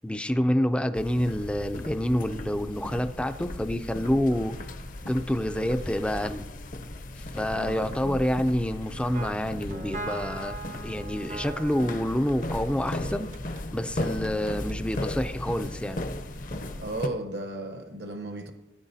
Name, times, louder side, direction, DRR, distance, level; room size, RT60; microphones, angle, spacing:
voice 1, 0.0-4.6 5.1-6.5 7.3-13.3 13.7-16.0, left 1 dB, 5° left, 0.3 m, -27 dB
sound 1, 1.0-17.1, left 1 dB, 45° left, 0.6 m, -36 dB
voice 2, 7.5-8.2 16.8-18.5, right 2 dB, 65° right, 0.9 m, -35 dB
sound 2, 9.1-13.6 14.0-15.0, right 3 dB, 40° right, 0.5 m, -40 dB
17.0 x 9.5 x 2.7 m
head